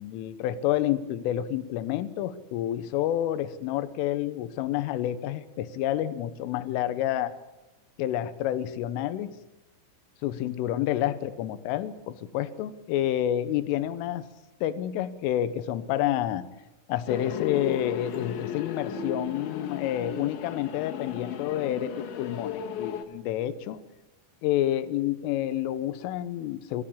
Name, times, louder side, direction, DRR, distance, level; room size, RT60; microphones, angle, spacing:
voice 1, 0.0-7.3 8.0-9.3 10.2-14.3 14.6-16.4 16.9-23.8 24.4-26.8, left 12 dB, 90° left, 13 dB, 3.6 m, -29 dB
sound 1, 17.1-23.0, left 7 dB, 70° left, 4.2 m, -35 dB
24.0 x 15.0 x 8.5 m, 0.99 s
omnidirectional pair, 5.6 m